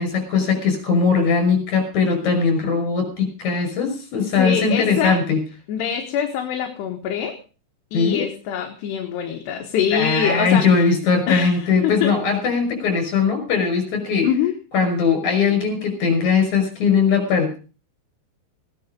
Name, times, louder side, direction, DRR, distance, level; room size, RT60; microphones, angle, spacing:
voice 1, 0.0-5.4 7.9-8.3 9.9-14.3 14.7-17.6, left 5 dB, 40° left, 5 dB, 6.9 m, -20 dB
voice 2, 4.1-5.2 5.7-7.4 7.9-10.9 11.3-12.1 14.2-14.5, left 8 dB, 70° left, 3 dB, 3.2 m, -24 dB
18.0 x 10.5 x 5.3 m, 0.36 s
omnidirectional pair, 5.6 m